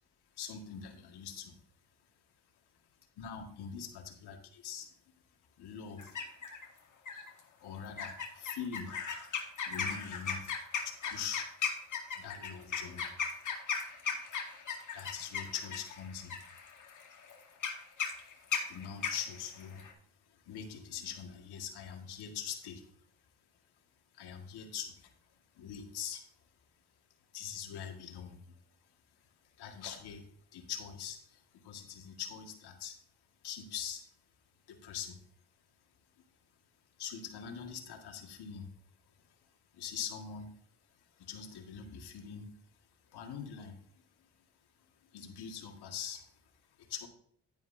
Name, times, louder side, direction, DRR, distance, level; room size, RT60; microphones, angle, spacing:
voice 1, 0.4-1.5 3.2-4.9 5.6-6.2 7.6-8.9 9.7-10.6 10.8-11.5 12.2-13.1 14.9-16.4 18.6-19.9 20.3-22.9 24.1-25.1 25.5-26.2 27.3-28.4 29.6-33.0 33.4-34.0 34.7-35.2 37.0-38.7 39.2-39.3 39.7-40.5 41.1-42.5 43.1-44.0 45.1-46.3 46.8-47.1, left 8 dB, 75° left, 4 dB, 1.9 m, -43 dB
sound 1, 6.0-6.7 7.1-7.4 8.0-19.9, left 6 dB, 50° left, 2.1 m, -37 dB
11.0 x 9.3 x 2.7 m, 0.63 s
supercardioid pair, 65°, 39 cm